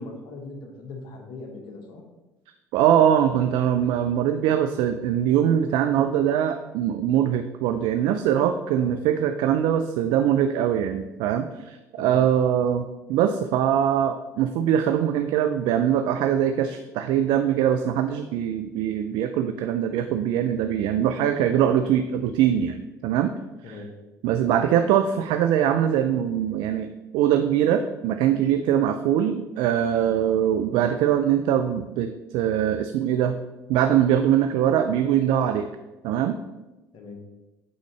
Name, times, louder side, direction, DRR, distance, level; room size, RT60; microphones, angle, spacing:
voice 1, 0.0-2.0 8.7-8.9 12.0-12.2 23.6-23.9 36.9-37.2, left 3 dB, 60° left, 3 dB, 1.2 m, -40 dB
voice 2, 2.7-23.3 23.6-23.8 24.2-33.3 33.7-35.7 36.0-36.4, right 10 dB, 65° right, 8 dB, 0.4 m, -22 dB
8.4 x 3.8 x 3.2 m, 1.1 s
hypercardioid pair, 60°, 9 cm